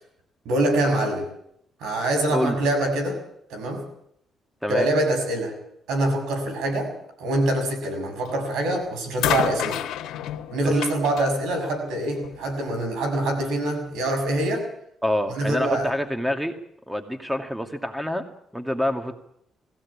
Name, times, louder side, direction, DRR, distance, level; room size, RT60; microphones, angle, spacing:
voice 1, 0.5-1.3 1.8-3.2 3.5-3.8 4.7-5.5 5.9-6.9 7.2-9.8 10.5-14.7 15.3-15.9, right 1 dB, 85° right, 4 dB, 6.9 m, -24 dB
sound 1, 8.3-8.6 9.2-12.5 13.5-13.6, left 11 dB, 85° left, 1.5 m, -30 dB
voice 2, 15.0-16.5 16.9-18.2 18.5-19.1, left 1 dB, 5° right, 6 dB, 2.3 m, -26 dB
20.5 x 16.0 x 8.6 m, 0.72 s
cardioid pair, 90°, 0 cm